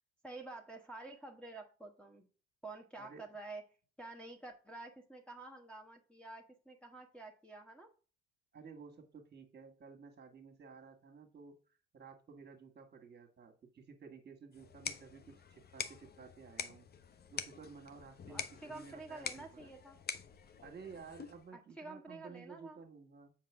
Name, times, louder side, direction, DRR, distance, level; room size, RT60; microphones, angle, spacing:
voice 1, 0.2-2.2 2.6-3.6 4.0-7.9 18.3-20.0 21.5-22.8, right 2 dB, 5° left, 0 dB, 1.2 m, -49 dB
voice 2, 8.5-11.6 11.9-16.9 17.3-19.7 20.6-23.3, right 5 dB, 35° right, 5 dB, 1.8 m, -54 dB
sound 1, 14.5-21.5, left 7 dB, 30° left, 0.8 m, -46 dB
7.2 x 5.2 x 3.6 m, 0.36 s
hypercardioid pair, 60°, 31 cm